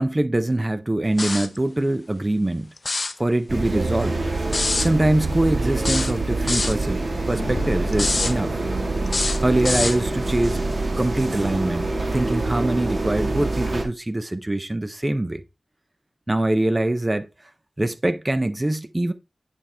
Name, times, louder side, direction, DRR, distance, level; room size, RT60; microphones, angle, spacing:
voice 1, 0.0-2.7 3.2-4.2 4.8-8.6 9.4-10.6 11.0-15.4 16.3-17.5 17.8-19.1, right 1 dB, 20° right, 0.5 m, -23 dB
sound 1, 1.2-1.6 2.8-3.2 4.5-4.9 5.8-6.8 7.9-8.4 9.1-10.0, left 3 dB, 45° left, 0.5 m, -25 dB
sound 2, 3.5-13.8, right 2 dB, 45° right, 1.6 m, -25 dB
sound 3, 7.4-9.3, left 3 dB, 70° left, 0.9 m, -38 dB
9.7 x 4.4 x 3.3 m
wide cardioid pair, 75°, 0 cm